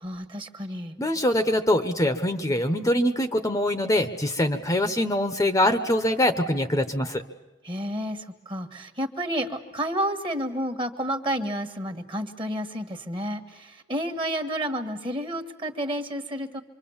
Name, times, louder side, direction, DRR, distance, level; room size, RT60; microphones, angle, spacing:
voice 1, 0.0-1.0 7.6-16.6, equal, 25° right, 7 dB, 1.5 m, -30 dB
voice 2, 1.0-7.2, left 1 dB, 15° left, 8 dB, 0.9 m, -23 dB
25.5 x 25.0 x 7.2 m, 1.0 s
head